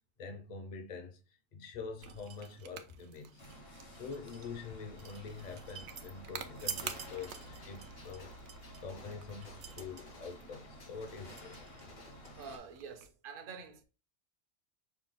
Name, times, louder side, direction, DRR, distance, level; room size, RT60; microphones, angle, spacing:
voice 1, 0.2-1.2 1.5-3.4 4.0-8.3 8.8-11.6, left 5 dB, 45° left, 0.7 m, -45 dB
sound 1, 2.0-13.1, right 8 dB, 80° right, 0.9 m, -48 dB
sound 2, 3.4-12.6, equal, 60° left, 1.3 m, -52 dB
Gunshot gunfire, 7.1-12.5, left 2 dB, 75° left, 2.6 m, -57 dB
voice 2, 12.4-13.8, right 6 dB, 55° right, 0.8 m, -47 dB
5.7 x 2.3 x 3.8 m
omnidirectional pair, 1.2 m